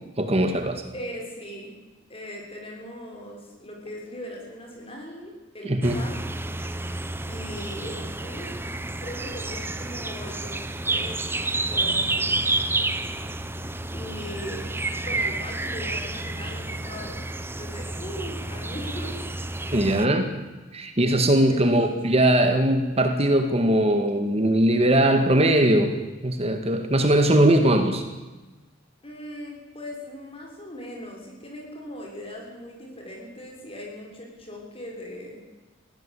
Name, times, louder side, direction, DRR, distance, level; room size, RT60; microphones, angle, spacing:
voice 1, 0.2-0.9 5.6-6.0 19.7-20.3 20.7-25.9 26.2-28.0, right 1 dB, 35° right, 6 dB, 1.9 m, -20 dB
voice 2, 0.9-1.8 2.1-6.2 7.3-8.6 9.0-12.3 13.9-17.2 17.6-19.2 21.5-22.2 29.0-35.4, equal, 30° left, 0 dB, 6.7 m, -39 dB
sound 1, 5.8-20.1, right 2 dB, 10° right, 1.1 m, -30 dB
21.5 x 16.5 x 8.5 m, 1.2 s
head